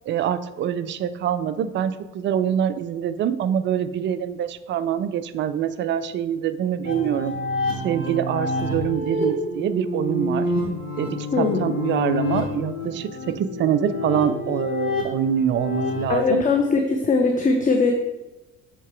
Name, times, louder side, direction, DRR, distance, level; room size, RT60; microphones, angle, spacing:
voice 1, 0.1-7.4 7.8-10.5 10.9-16.4, right 9 dB, 30° right, 12 dB, 0.4 m, -25 dB
sound 1, 6.8-16.0, left 2 dB, 85° left, 1.2 m, -28 dB
voice 2, 11.3-11.7 16.1-17.9, left 4 dB, 20° left, 4 dB, 0.6 m, -20 dB
7.2 x 3.8 x 4.5 m, 1.0 s
figure-of-eight pair, 55°, 44 cm